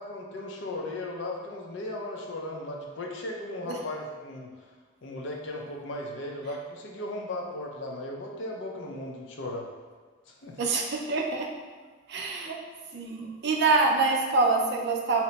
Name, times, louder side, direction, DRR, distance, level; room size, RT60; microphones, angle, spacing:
voice 1, 0.0-4.5 5.0-9.7 10.3-10.6, left 1 dB, 65° left, 0 dB, 0.5 m, -36 dB
voice 2, 10.6-11.5 12.1-12.6 12.9-15.2, right 3 dB, 60° right, 1 dB, 0.4 m, -25 dB
2.8 x 2.1 x 4.0 m, 1.4 s
head